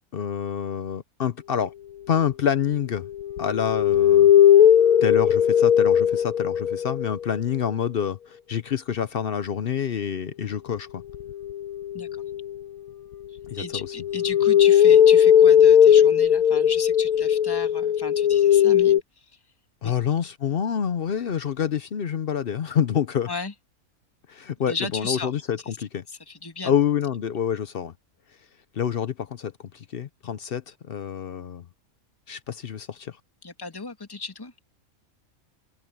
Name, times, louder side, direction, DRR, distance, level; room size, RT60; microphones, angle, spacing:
voice 1, 0.1-1.7 2.1-3.1 3.4-4.3 5.0-11.0 13.5-13.9 19.8-23.3 24.3-26.0 26.6-27.9 28.7-31.7 32.3-33.2, left 8 dB, 55° left, 0.7 m, -27 dB
sound 1, 2.9-7.1 11.1-12.6 13.5-19.0, left 9 dB, 85° left, 1.5 m, -18 dB
voice 2, 13.5-19.3 19.8-19.9 23.3-23.5 24.7-25.3 26.1-26.7 33.4-34.5, left 3 dB, 15° left, 2.1 m, -35 dB
omnidirectional pair, 1.5 m